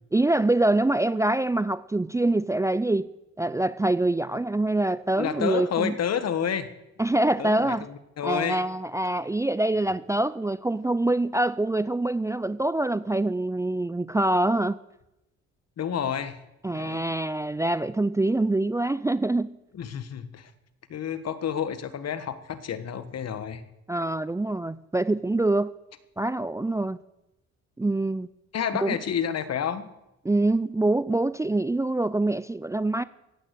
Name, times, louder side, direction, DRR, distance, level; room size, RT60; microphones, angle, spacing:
voice 1, 0.1-3.1 3.4-5.9 7.0-7.9 8.2-14.8 16.6-19.6 23.9-25.7 26.2-27.0 27.8-28.3 28.7-29.0 30.2-33.0, right 2 dB, 10° right, 0.5 m, -25 dB
voice 2, 5.1-6.7 7.4-8.6 15.8-16.4 16.7-17.1 19.7-20.5 20.9-23.6 28.5-29.9, left 8 dB, 55° left, 1.5 m, -30 dB
16.0 x 8.9 x 8.2 m
cardioid pair, 90°, 30 cm